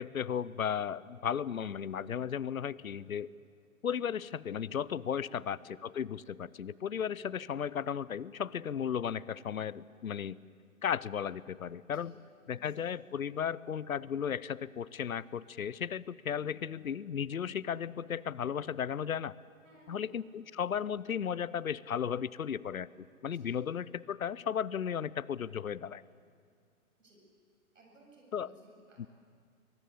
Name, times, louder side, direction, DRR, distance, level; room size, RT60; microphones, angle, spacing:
voice 1, 0.0-3.3 3.8-10.4 10.8-12.1 12.5-19.3 19.9-22.9 23.2-26.0 28.3-28.5, left 8 dB, 70° left, 21 dB, 0.7 m, -35 dB
voice 2, 5.2-5.6 11.9-12.1 12.5-12.7 19.6-20.1 23.2-23.6 27.0-27.2 27.7-29.0, right 2 dB, 60° right, 0 dB, 7.7 m, -61 dB
23.0 x 20.0 x 8.3 m, 2.2 s
figure-of-eight pair, 130°, 43 cm